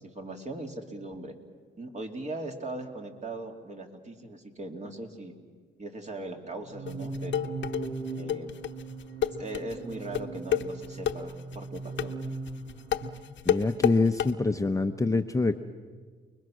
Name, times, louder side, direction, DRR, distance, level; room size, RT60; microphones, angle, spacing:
voice 1, 0.0-1.3 1.8-5.3 5.8-7.5 8.1-8.5 9.4-12.1, right 2 dB, 35° right, 3 dB, 2.8 m, -39 dB
sound 1, 6.6-13.2, right 3 dB, 80° right, 2.2 m, -39 dB
sound 2, 6.9-14.3, left 10 dB, 65° left, 0.9 m, -29 dB
voice 2, 13.5-15.6, left 3 dB, 15° left, 7 dB, 0.8 m, -25 dB
29.5 x 21.0 x 6.4 m, 1.6 s
cardioid pair, 90°, 20 cm